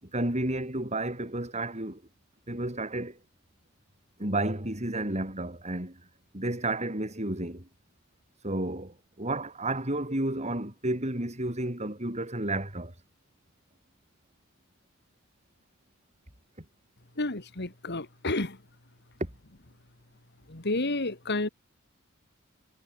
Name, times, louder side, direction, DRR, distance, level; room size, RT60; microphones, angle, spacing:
voice 1, 0.0-2.0 2.5-3.2 4.2-6.0 6.3-7.7 8.4-12.9 19.2-19.3, right 1 dB, 35° right, 6.3 m, -31 dB
voice 2, 17.2-18.6 20.5-21.5, left 2 dB, 55° left, 2.7 m, -30 dB
head